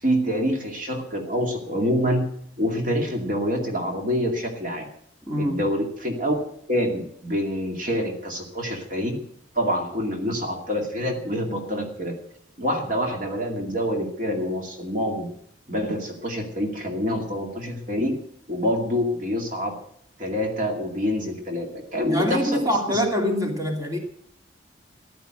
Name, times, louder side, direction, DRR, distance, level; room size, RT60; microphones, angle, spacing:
voice 1, 0.0-2.3 2.6-4.9 5.4-9.2 9.5-12.2 12.6-15.3 15.7-18.2 18.5-19.8 20.2-22.6 22.9-23.0, equal, 45° right, 2.3 m, -26 dB
voice 2, 5.3-5.6 22.0-24.0, left 1 dB, 20° right, 2.5 m, -24 dB
15.0 x 11.0 x 7.8 m
head